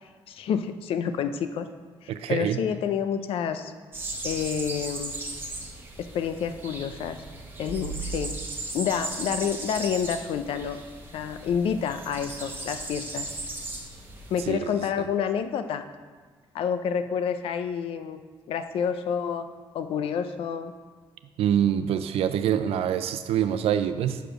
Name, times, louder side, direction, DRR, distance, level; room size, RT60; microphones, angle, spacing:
voice 1, 0.3-1.7 2.0-3.7 4.2-5.2 6.0-7.2 7.6-8.4 8.7-10.8 11.1-13.3 14.3-15.9 16.5-18.2 18.5-19.5 19.7-20.7, left 7 dB, 70° left, 9 dB, 0.5 m, -28 dB
voice 2, 2.1-2.6 14.5-15.0 21.4-24.2, right 9 dB, 85° right, 10 dB, 0.5 m, -25 dB
sound 1, 3.9-14.5, right 2 dB, 20° right, 1.0 m, -37 dB
6.7 x 4.9 x 6.1 m, 1.5 s
cardioid pair, 160°, 10 cm